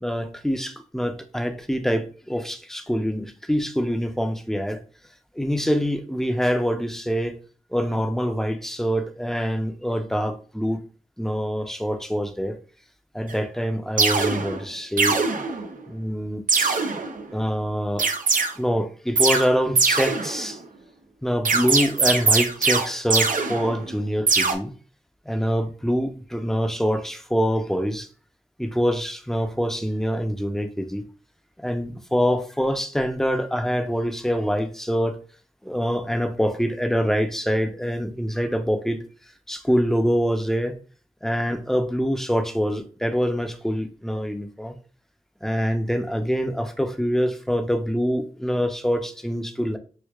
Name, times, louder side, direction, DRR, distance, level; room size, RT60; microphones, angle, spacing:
voice 1, 0.0-4.8 5.3-7.4 7.7-10.8 11.2-12.6 13.1-15.3 15.9-16.8 17.3-18.1 18.6-20.6 21.2-24.8 25.3-28.1 28.6-31.0 31.6-35.2 35.6-39.0 39.5-40.8 41.2-44.7 45.4-49.8, equal, 5° left, 0.6 m, -25 dB
sound 1, 13.3-13.4 14.0-14.6 15.0-15.8 16.5-17.3 18.0-18.5 19.2-19.5 19.8-20.6 21.5-24.0 24.3-24.5, right 4 dB, 85° right, 0.6 m, -22 dB
6.3 x 2.3 x 2.3 m
wide cardioid pair, 65°, 13 cm